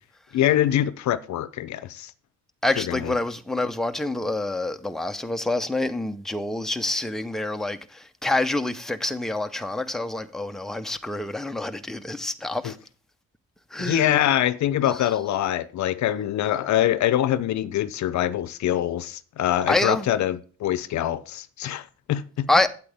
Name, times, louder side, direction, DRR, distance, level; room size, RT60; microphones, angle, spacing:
voice 1, 0.3-2.1 2.8-3.1 12.6-12.7 13.8-22.5, left 12 dB, 70° left, 0.7 m, -24 dB
voice 2, 2.6-12.8 13.7-14.1 19.7-20.1 22.5-22.7, left 2 dB, ahead, 0.8 m, -27 dB
8.5 x 8.4 x 3.5 m
cardioid pair, 90°, 30 cm